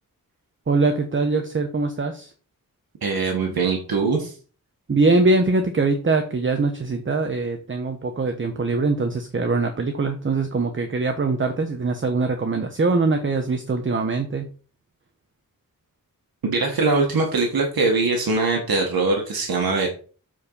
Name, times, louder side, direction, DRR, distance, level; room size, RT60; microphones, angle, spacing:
voice 1, 0.7-2.3 4.9-14.5, right 3 dB, 35° right, 6 dB, 1.0 m, -22 dB
voice 2, 3.0-4.3 16.4-19.9, right 3 dB, 90° right, 1 dB, 1.5 m, -22 dB
7.6 x 4.4 x 5.5 m, 0.39 s
wide cardioid pair, 90°, 35 cm